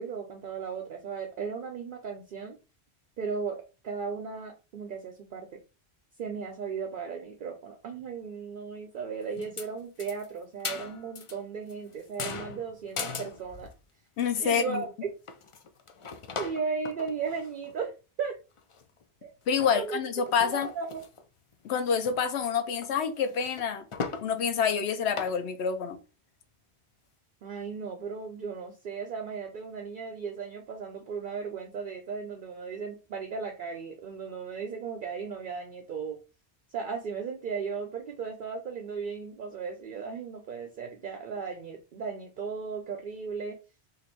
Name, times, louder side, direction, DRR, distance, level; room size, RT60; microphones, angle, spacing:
voice 1, 0.0-2.6 3.2-3.6 3.8-5.5 6.2-13.7 14.4-15.1 16.4-17.9 18.2-18.4 19.2-19.3 19.7-20.0 20.4-21.0 27.4-36.2 36.7-43.6, right 5 dB, 60° right, 4 dB, 0.7 m, -36 dB
sound 1, 9.3-9.7 10.0-11.4 11.7-13.8 14.3-14.4 14.6-14.9 15.3-17.8 18.3-18.4 18.6-19.0 19.5-19.8 20.3-21.2 21.5-21.6 22.0-22.5 22.8-22.9 23.2-24.3 24.7-24.8 25.1-25.4, left 5 dB, 60° left, 0.3 m, -39 dB
voice 2, 14.2-14.9 19.5-20.7 21.6-23.8 24.2-26.0, left 7 dB, 85° left, 8 dB, 0.9 m, -27 dB
2.6 x 2.5 x 4.2 m, 0.31 s
omnidirectional pair, 1.1 m